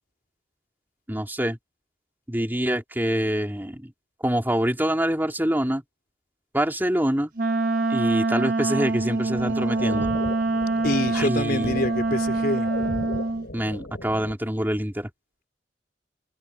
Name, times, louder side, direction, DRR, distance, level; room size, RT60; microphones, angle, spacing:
voice 1, 1.1-1.6 2.3-3.9 4.2-5.8 6.5-7.3 7.9-10.1 11.1-11.7 13.5-15.1, equal, 10° right, 3.1 m, -25 dB
Wind instrument woodwind instrument, 7.4-13.5, right 2 dB, 55° right, 1.2 m, -25 dB
sound 1, 9.3-14.4, left 1 dB, 75° left, 5.9 m, -36 dB
voice 2, 10.8-12.7, left 2 dB, 55° left, 4.0 m, -26 dB
head